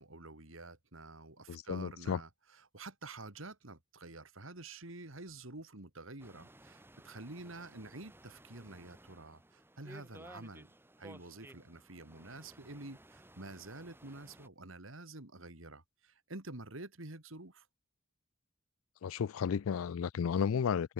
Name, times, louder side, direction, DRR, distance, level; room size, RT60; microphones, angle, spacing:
voice 1, 0.0-10.7 11.0-17.7, right 2 dB, 70° right, 3.2 m, -49 dB
voice 2, 1.5-2.2 19.0-20.9, left 7 dB, 85° left, 0.4 m, -33 dB
sound 1, 6.2-14.5, right 1 dB, 10° right, 2.6 m, -57 dB
head